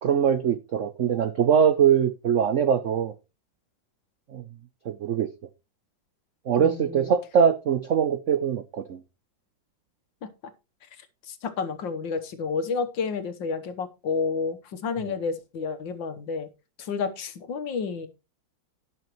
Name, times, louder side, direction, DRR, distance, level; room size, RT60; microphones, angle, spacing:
voice 1, 0.0-3.1 4.3-4.4 4.8-5.3 6.5-9.0, right 8 dB, 75° right, 0.7 m, -22 dB
voice 2, 6.6-7.1 10.2-10.3 11.3-16.5 16.8-18.1, left 5 dB, 70° left, 1.8 m, -30 dB
17.5 x 6.2 x 3.1 m
omnidirectional pair, 2.2 m